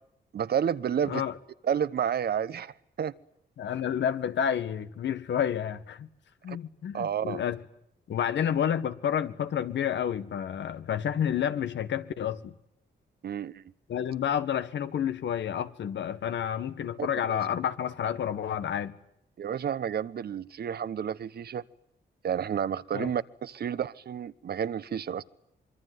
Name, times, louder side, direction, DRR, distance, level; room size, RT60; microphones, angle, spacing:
voice 1, 0.3-1.2 1.6-3.1 6.5-6.6 6.9-7.4 13.2-13.7 17.0-17.4 19.4-21.6 22.2-25.2, right 8 dB, 60° right, 1.1 m, -31 dB
voice 2, 3.6-6.1 6.4-7.6 8.1-12.5 13.9-18.9 22.9-23.1, left 9 dB, 90° left, 1.7 m, -30 dB
25.0 x 24.0 x 9.5 m
wide cardioid pair, 145°, 18 cm